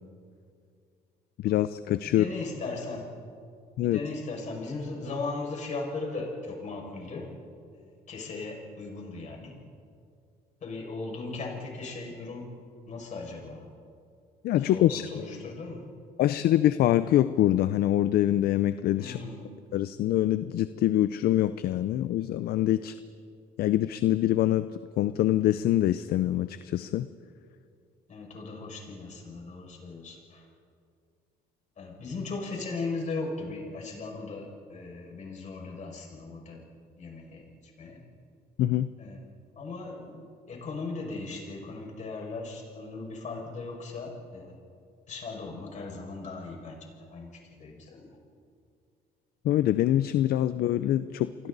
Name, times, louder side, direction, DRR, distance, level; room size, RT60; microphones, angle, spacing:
voice 1, 1.4-2.2 3.8-4.0 14.4-15.2 16.2-19.2 19.7-22.9 23.6-24.7 25.0-27.1 38.6-38.9 49.4-51.3, left 13 dB, 65° left, 13 dB, 0.6 m, -24 dB
voice 2, 2.0-3.1 3.8-7.3 7.7-9.6 10.6-12.5 12.9-13.7 14.5-15.8 19.0-19.6 28.1-30.5 31.8-36.6 37.0-38.0 39.0-39.2 39.6-44.6 45.1-46.8 47.1-48.1, left 3 dB, 45° left, -1 dB, 6.1 m, -38 dB
29.5 x 24.0 x 4.1 m, 2.4 s
cardioid pair, 110°, 17 cm